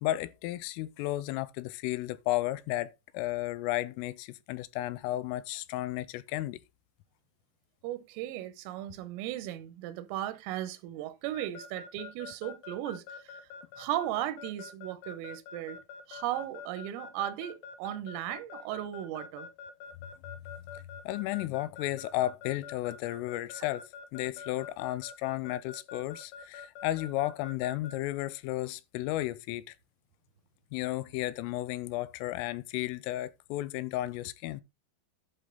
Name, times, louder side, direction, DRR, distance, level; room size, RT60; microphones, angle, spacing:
voice 1, 0.0-6.6 21.1-29.7 30.7-34.6, left 16 dB, 90° left, 3.3 m, -33 dB
voice 2, 7.8-13.5 13.8-15.8 16.1-19.5, right 13 dB, 90° right, 3.5 m, -36 dB
Keyboard (musical) / Alarm, 11.3-27.9, left 6 dB, 70° left, 3.1 m, -45 dB
11.5 x 5.3 x 3.9 m
omnidirectional pair, 5.7 m